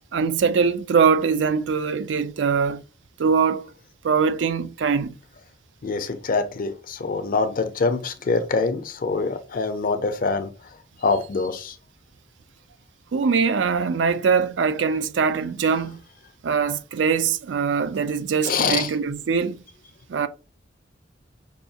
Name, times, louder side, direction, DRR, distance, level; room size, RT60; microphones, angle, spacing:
voice 1, 0.1-2.8 3.2-3.7 4.0-5.1 13.1-16.0 16.4-19.6 20.1-20.3, right 5 dB, 70° right, 0.4 m, -22 dB
voice 2, 5.8-10.5 11.0-11.8 18.4-18.9, left 4 dB, 50° left, 0.5 m, -24 dB
5.3 x 2.3 x 2.7 m
head